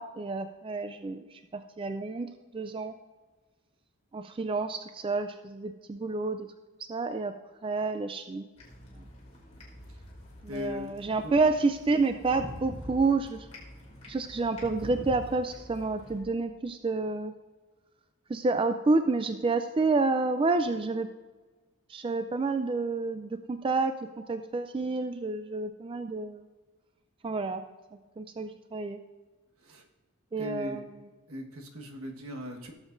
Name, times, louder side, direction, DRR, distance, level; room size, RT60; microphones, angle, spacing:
voice 1, 0.0-2.9 4.1-6.5 6.8-7.3 7.6-8.4 9.0-9.1 10.4-13.5 14.1-17.3 18.3-21.1 21.9-23.9 24.3-26.4 27.2-27.6 28.2-29.0 30.3-30.8, right 3 dB, 25° right, 8 dB, 0.3 m, -29 dB
sound 1, 8.6-16.2, equal, 30° left, 2.6 m, -46 dB
voice 2, 10.5-10.9 11.2-11.3 29.6-29.9 30.4-30.8 31.3-32.7, left 2 dB, 75° right, 2 dB, 1.4 m, -39 dB
17.0 x 7.2 x 2.6 m, 1.3 s
head